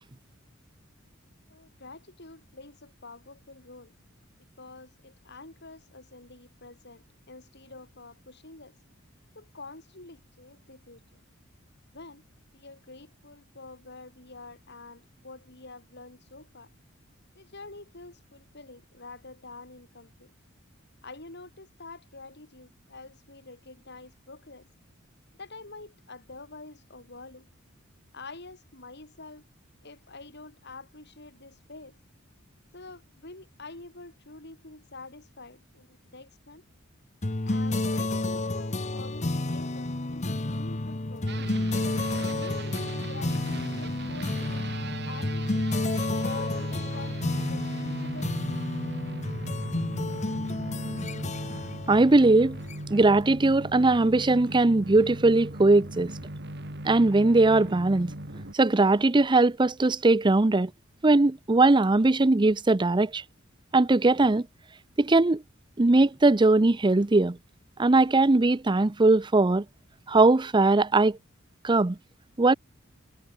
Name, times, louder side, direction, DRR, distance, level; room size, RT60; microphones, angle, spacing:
voice 1, 1.5-3.9 4.6-8.7 9.4-11.0 11.9-12.2 12.5-16.7 17.4-20.3 21.0-24.7 25.4-27.5 28.1-29.5 29.8-32.0 32.7-36.6 37.4-41.4 42.3-45.7 46.2-48.3, left 3 dB, 55° left, 5.2 m, -47 dB
sound 1, 37.2-53.1, left 2 dB, 35° left, 1.1 m, -31 dB
sound 2, 41.3-58.5, right 1 dB, 55° right, 4.2 m, -38 dB
voice 2, 51.9-52.6 52.9-56.2 56.8-58.1 58.5-60.7 61.0-63.2 63.7-64.5 65.0-65.4 65.8-67.4 67.8-69.6 70.1-71.2 71.6-72.0 72.4-72.5, right 2 dB, 25° right, 0.6 m, -20 dB
head